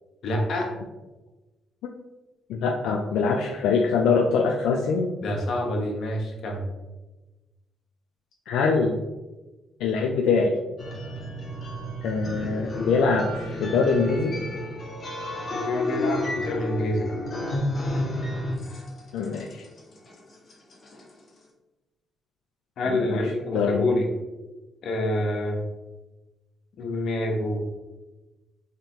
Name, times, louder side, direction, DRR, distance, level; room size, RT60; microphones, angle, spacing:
voice 1, 0.2-0.7 5.2-6.6 15.5-17.2 22.8-24.1 24.8-25.6 26.8-27.6, left 1 dB, 65° left, 0 dB, 1.1 m, -27 dB
voice 2, 2.5-5.1 8.5-9.0 9.8-10.5 12.0-14.3 19.1-19.6 22.9-23.2 23.5-24.0, left 5 dB, 90° left, 1 dB, 0.4 m, -23 dB
sound 1, 10.8-21.1, left 1 dB, 40° left, 1.2 m, -31 dB
3.7 x 3.2 x 4.4 m, 1.1 s
cardioid pair, 90°, 0 cm